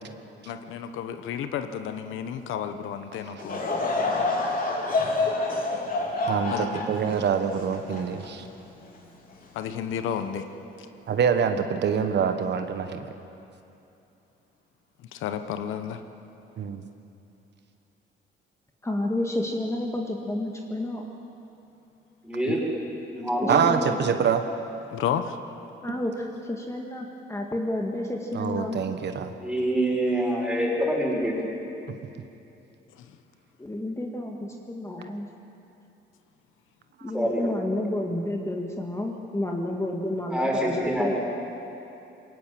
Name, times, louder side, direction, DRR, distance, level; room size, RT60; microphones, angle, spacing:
voice 1, 0.4-3.6 6.5-6.9 9.5-10.5 15.1-16.0 24.9-25.4 33.0-33.2, left 8 dB, 85° left, 9 dB, 1.1 m, -32 dB
Laughter / Crowd, 3.4-8.9 9.4-9.5 10.3-10.6, left 3 dB, 45° left, 3.7 m, -28 dB
voice 2, 6.3-8.5 11.1-13.1 16.6-16.8 22.5-22.6 23.5-24.4 28.3-29.3, right 7 dB, 60° right, 7 dB, 1.2 m, -25 dB
voice 3, 18.8-21.0 23.4-24.0 25.8-28.8 33.6-35.3 37.0-41.2, left 1 dB, 15° left, 1 dB, 2.0 m, -30 dB
voice 4, 22.2-22.6 23.1-23.6 23.8-23.9 29.4-31.4 37.1-37.8 40.3-41.2, equal, 5° right, -3 dB, 6.2 m, -26 dB
21.5 x 19.0 x 7.6 m, 2.8 s
cardioid pair, 90°, 20 cm